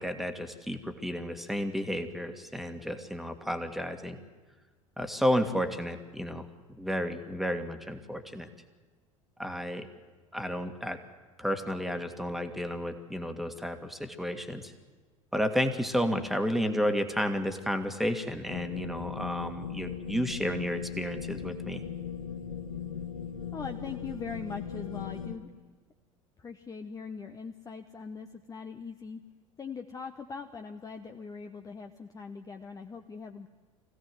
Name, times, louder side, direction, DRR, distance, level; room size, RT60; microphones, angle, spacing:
voice 1, 0.0-4.2 5.0-6.5 6.7-8.5 9.4-9.9 10.3-11.0 11.4-14.7 15.3-21.8, equal, ahead, 6 dB, 1.9 m, -32 dB
sound 1, 18.5-25.4, left 7 dB, 75° left, 1.7 m, -38 dB
voice 2, 23.5-25.5 26.4-29.2 29.6-33.5, left 5 dB, 20° left, 5 dB, 1.0 m, -41 dB
24.5 x 16.5 x 7.9 m, 1.4 s
figure-of-eight pair, 75°, 17 cm